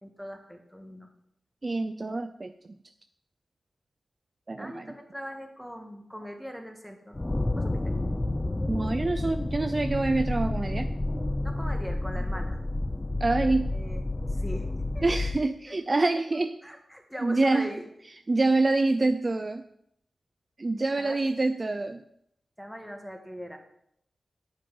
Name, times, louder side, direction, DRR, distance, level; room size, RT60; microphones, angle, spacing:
voice 1, 0.0-1.1 4.6-7.2 7.5-8.0 11.4-12.6 13.7-15.3 15.6-16.0 16.6-17.8 21.0-21.2 22.6-23.6, equal, ahead, 3 dB, 1.6 m, -41 dB
voice 2, 1.6-2.5 4.5-4.9 8.7-10.9 13.2-13.7 15.0-16.5 17.2-17.7 18.3-19.6 20.6-22.0, right 2 dB, 30° right, 8 dB, 0.5 m, -26 dB
sound 1, 7.1-15.4, left 2 dB, 20° left, 0.6 m, -30 dB
10.5 x 8.7 x 5.6 m, 0.73 s
wide cardioid pair, 145°, 0 cm